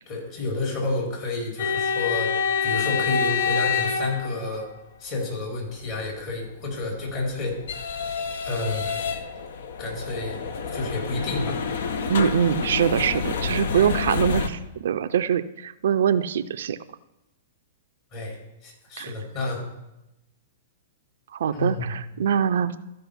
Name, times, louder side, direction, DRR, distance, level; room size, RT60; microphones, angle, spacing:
voice 1, 0.1-4.7 5.0-7.5 8.4-9.0 9.8-10.4 10.7-11.6 18.1-19.6 21.5-21.9, left 2 dB, 45° left, -2 dB, 4.3 m, -30 dB
sound 1, 1.6-4.8 6.8-14.5, left 5 dB, 65° left, 0.8 m, -27 dB
voice 2, 12.1-16.8 19.0-19.1 21.3-22.8, right 8 dB, 65° right, 11 dB, 0.4 m, -23 dB
13.0 x 5.3 x 5.6 m, 0.93 s
figure-of-eight pair, 110°, 0 cm